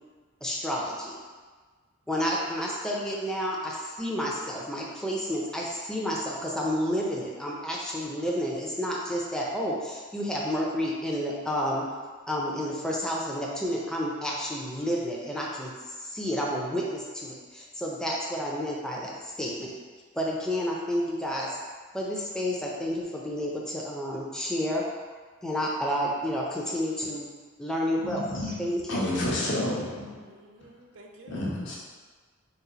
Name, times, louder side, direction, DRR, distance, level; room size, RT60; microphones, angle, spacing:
voice 1, 0.4-1.2 2.1-11.9 12.3-19.7 20.1-21.5 21.9-24.8 25.4-27.3 27.6-28.2 28.6-29.0, equal, 5° left, -3 dB, 0.4 m, -30 dB
voice 2, 28.0-30.2 31.3-31.8, left 1 dB, 60° left, -5 dB, 0.9 m, -30 dB
voice 3, 28.9-29.9 30.2-31.5, right 3 dB, 65° right, 2 dB, 0.5 m, -49 dB
4.0 x 2.4 x 3.9 m, 1.5 s
head